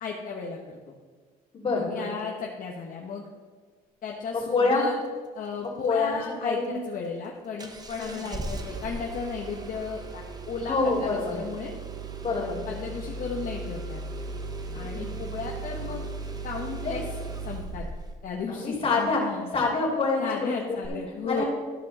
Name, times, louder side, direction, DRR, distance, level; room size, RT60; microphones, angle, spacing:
voice 1, 0.0-0.9 1.7-3.2 4.0-5.0 5.3-6.6 6.9-11.7 12.3-14.0 14.7-16.1 16.4-17.0 17.4-17.8 18.2-19.5 20.2-21.4, left 5 dB, 55° left, 0 dB, 1.0 m, -35 dB
voice 2, 1.5-2.1 4.3-4.8 5.6-6.8 7.9-8.3 10.6-11.3 12.2-12.6 14.8-15.2 16.8-17.0 18.5-20.5 20.8-20.9 21.2-21.5, left 3 dB, 35° left, -3 dB, 3.0 m, -27 dB
Engine starting, 7.6-18.2 20.8-20.9, right 3 dB, 25° right, 0.9 m, -37 dB
13.0 x 5.2 x 4.2 m, 1.5 s
cardioid pair, 110°, 17 cm